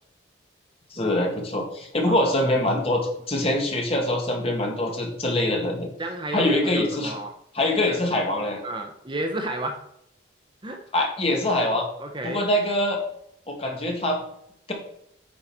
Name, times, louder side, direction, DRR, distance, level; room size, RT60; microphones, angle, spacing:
voice 1, 0.9-5.9 6.3-7.2 7.5-8.6 10.9-11.9 12.2-13.0 13.5-14.2, left 1 dB, 30° left, 1 dB, 1.7 m, -24 dB
voice 2, 2.1-2.5 6.0-7.3 7.8-8.0 8.6-9.8 10.6-10.8 12.0-12.5, right 1 dB, 25° right, 5 dB, 0.8 m, -31 dB
9.1 x 5.5 x 4.4 m, 0.74 s
head